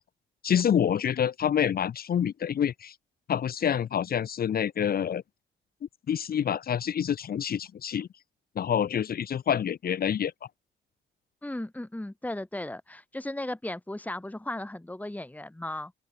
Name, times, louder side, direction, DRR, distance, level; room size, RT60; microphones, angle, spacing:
voice 1, 0.4-2.9 3.3-5.2 6.1-8.1 8.6-10.3, left 8 dB, 50° left, 0.9 m, -27 dB
voice 2, 11.4-15.9, left 1 dB, 10° left, 3.4 m, -36 dB
open air
cardioid pair, 90°, 20 cm